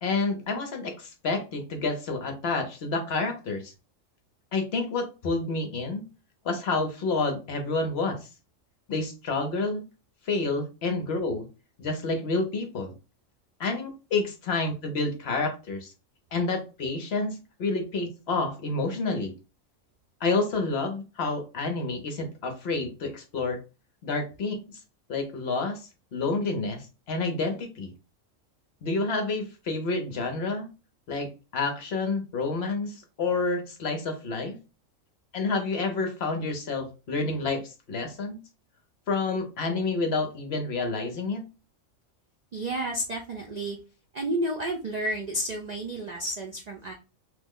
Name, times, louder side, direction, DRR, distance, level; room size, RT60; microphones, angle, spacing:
voice 1, 0.0-3.7 4.5-6.0 6.4-8.3 8.9-9.8 10.3-11.5 11.8-12.9 13.6-15.9 16.3-19.3 20.2-23.6 24.0-24.6 25.1-27.9 28.8-30.7 31.1-34.6 35.3-38.4 39.1-41.4, left 3 dB, 60° left, 4 dB, 0.8 m, -29 dB
voice 2, 42.5-43.8 44.1-46.9, right 1 dB, 85° right, 1 dB, 0.3 m, -31 dB
3.0 x 2.0 x 3.5 m, 0.31 s
omnidirectional pair, 1.4 m